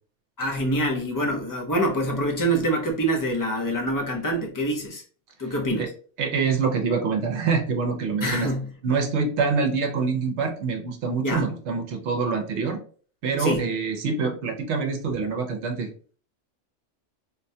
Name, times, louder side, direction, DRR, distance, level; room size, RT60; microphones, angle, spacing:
voice 1, 0.4-5.0 5.4-5.9 8.2-8.7 11.2-11.5 13.4-13.6, right 1 dB, 30° left, 1 dB, 0.4 m, -25 dB
voice 2, 5.4-5.9 6.2-8.5 8.8-12.8 13.2-15.9, right 5 dB, 70° right, 4 dB, 0.9 m, -25 dB
3.8 x 2.2 x 2.6 m, 0.42 s
omnidirectional pair, 1.2 m